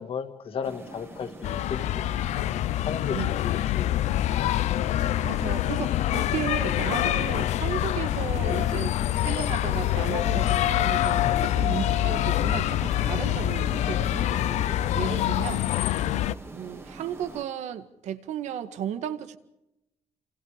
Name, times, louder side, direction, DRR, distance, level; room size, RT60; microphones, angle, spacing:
voice 1, 0.0-2.2 2.8-4.0, left 6 dB, 55° left, 7 dB, 2.5 m, -35 dB
sound 1, 0.6-17.4, right 2 dB, 20° right, 2.2 m, -44 dB
sound 2, 1.4-16.3, left 13 dB, 80° left, 0.8 m, -25 dB
voice 2, 5.2-14.3 15.0-15.7 16.5-19.4, right 10 dB, 80° right, 10 dB, 1.9 m, -34 dB
28.5 x 28.0 x 5.0 m, 0.89 s
cardioid pair, 130°, 12 cm